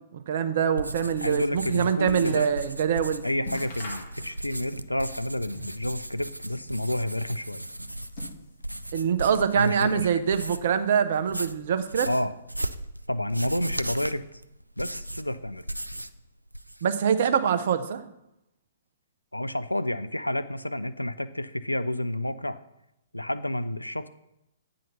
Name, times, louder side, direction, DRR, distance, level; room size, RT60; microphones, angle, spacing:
voice 1, 0.3-3.2 8.9-12.1 16.8-18.0, right 7 dB, 50° right, 9 dB, 0.7 m, -24 dB
sound 1, 0.7-10.8 11.1-16.2 16.5-17.0, right 1 dB, 90° right, 0.4 m, -37 dB
voice 2, 1.2-2.5 3.2-7.6 9.5-10.1 12.0-12.3 13.1-14.3 14.8-15.6 19.3-22.6 23.1-24.1, left 1 dB, 90° left, 12 dB, 0.4 m, -30 dB
sound 2, 2.1-2.7 3.0-3.1 3.4-4.7 5.0-5.9 6.3-7.2 7.8-8.8 9.3-10.0 10.3-11.0 11.7-11.8, left 2 dB, 45° left, 1.9 m, -45 dB
9.0 x 3.9 x 6.7 m, 0.85 s
figure-of-eight pair, 120°, 0 cm